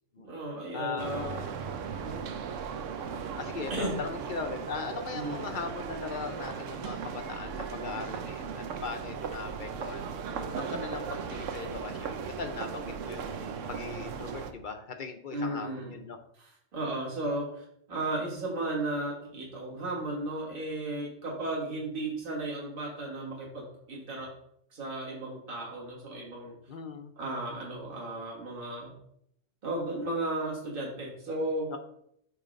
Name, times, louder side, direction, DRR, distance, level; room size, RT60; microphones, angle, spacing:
voice 1, 0.2-1.4 1.9-2.3 3.1-3.3 3.7-4.0 5.1-5.4 15.3-16.0 16.4-24.3 24.7-26.6 27.2-29.0 29.6-31.7, right 2 dB, 45° right, -4 dB, 1.9 m, -35 dB
voice 2, 0.7-1.5 3.3-16.2 26.7-27.1 31.7-31.8, left 5 dB, 55° left, 6 dB, 0.6 m, -39 dB
sound 1, 1.0-14.5, right 6 dB, 75° right, 1.0 m, -37 dB
8.1 x 3.1 x 5.1 m, 0.71 s
omnidirectional pair, 1.3 m